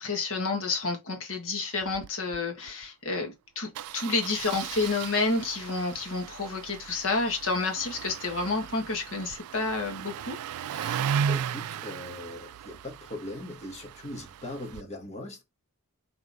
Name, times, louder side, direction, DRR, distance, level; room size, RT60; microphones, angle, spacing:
voice 1, 0.0-10.4 10.7-11.0, left 3 dB, 60° left, 1.5 m, -30 dB
Engine starting, 1.8-2.1 2.3-2.4 2.7-2.8 3.7-14.8, right 8 dB, 75° right, 0.3 m, -36 dB
voice 2, 11.2-15.4, left 1 dB, 30° left, 1.7 m, -40 dB
5.1 x 3.5 x 2.6 m
head